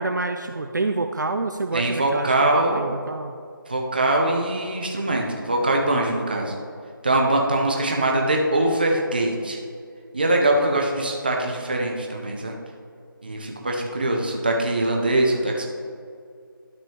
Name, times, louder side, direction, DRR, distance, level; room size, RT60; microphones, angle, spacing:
voice 1, 0.0-3.3, right 3 dB, 55° right, 6 dB, 0.4 m, -27 dB
voice 2, 1.7-2.8 3.7-6.5 7.0-9.6 10.1-12.6 13.2-15.7, right 1 dB, 25° right, 1 dB, 0.7 m, -22 dB
12.0 x 5.3 x 3.0 m, 2.3 s
figure-of-eight pair, 175°, 12 cm